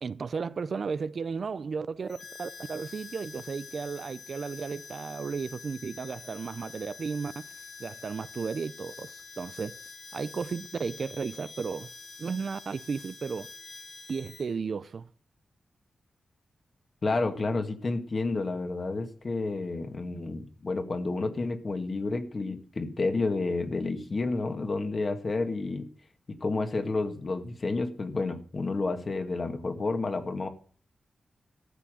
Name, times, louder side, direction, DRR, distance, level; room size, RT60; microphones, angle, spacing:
voice 1, 0.0-7.5 7.8-9.8 10.1-11.9 12.2-13.5 14.1-15.1, right 5 dB, 55° right, 0.6 m, -34 dB
Harmonica, 2.1-14.5, left 5 dB, 70° left, 3.7 m, -46 dB
voice 2, 17.0-25.9 26.3-30.5, left 3 dB, 40° left, 2.0 m, -30 dB
14.0 x 6.1 x 9.1 m
wide cardioid pair, 120°, 0 cm